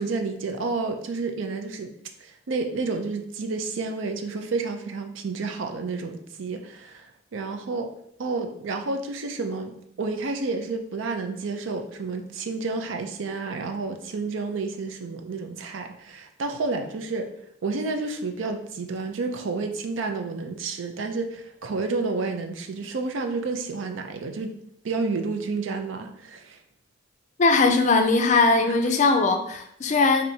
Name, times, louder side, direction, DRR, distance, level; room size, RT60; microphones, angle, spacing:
voice 1, 0.0-1.9 2.2-7.9 8.2-9.7 10.0-17.3 17.6-24.5 24.8-26.6 28.7-28.8, right 3 dB, 75° right, 5 dB, 0.5 m, -30 dB
voice 2, 27.4-30.2, left 3 dB, 40° left, 5 dB, 0.4 m, -20 dB
4.4 x 2.6 x 2.7 m, 0.70 s
head